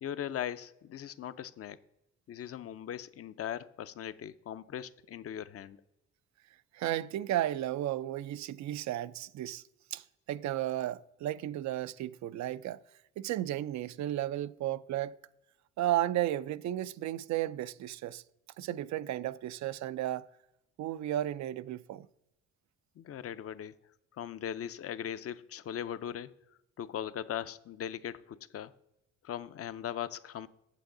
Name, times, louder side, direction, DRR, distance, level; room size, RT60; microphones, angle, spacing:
voice 1, 0.0-1.8 2.3-5.8 23.0-23.7 24.2-26.3 26.8-28.7 29.2-30.5, left 10 dB, 50° left, 0.5 m, -39 dB
voice 2, 6.7-9.6 9.9-12.8 13.2-15.2 15.8-18.2 18.6-20.3 20.8-22.1, right 13 dB, 65° right, 0.4 m, -34 dB
8.4 x 7.6 x 3.8 m
cardioid pair, 90°, 30 cm